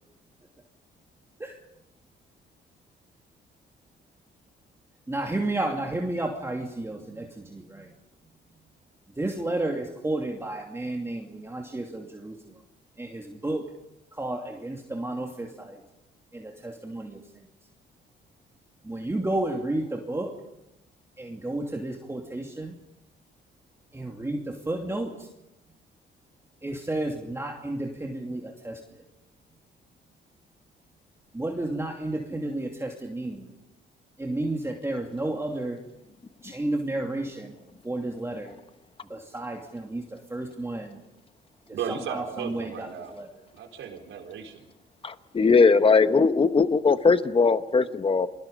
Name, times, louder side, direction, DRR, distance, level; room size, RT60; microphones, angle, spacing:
voice 1, 5.1-7.9 9.1-12.6 13.0-13.6 14.1-15.8 16.3-17.5 18.8-20.3 21.2-22.7 23.9-25.3 26.6-29.0 31.3-33.5 34.2-35.8 36.4-37.6 37.8-38.6 39.1-41.0 41.7-43.4, right 2 dB, 15° right, 1 dB, 2.7 m, -32 dB
voice 2, 41.7-43.2 43.5-44.7, right 7 dB, 75° right, 3 dB, 4.2 m, -35 dB
voice 3, 45.0-48.3, left 4 dB, 25° left, 11 dB, 1.1 m, -20 dB
29.0 x 22.0 x 5.4 m, 0.90 s
cardioid pair, 90°, 20 cm